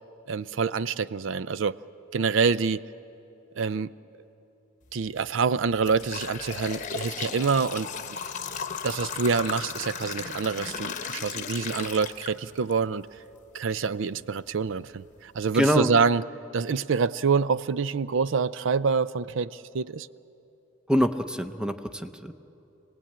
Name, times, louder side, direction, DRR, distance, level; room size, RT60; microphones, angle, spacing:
voice 1, 0.3-1.8 2.1-2.8 3.6-3.9 4.9-7.9 8.8-13.1 13.5-16.2 16.5-20.1, right 5 dB, 65° right, 16 dB, 0.5 m, -26 dB
sound 1, 4.9-5.1 5.6-12.7 13.2-13.3 14.1-14.2 14.7-14.8 15.3-15.5, left 6 dB, 40° left, 1.0 m, -35 dB
voice 2, 15.5-15.9 20.9-22.3, equal, 5° right, 9 dB, 0.7 m, -25 dB
26.0 x 18.5 x 8.8 m, 3.0 s
head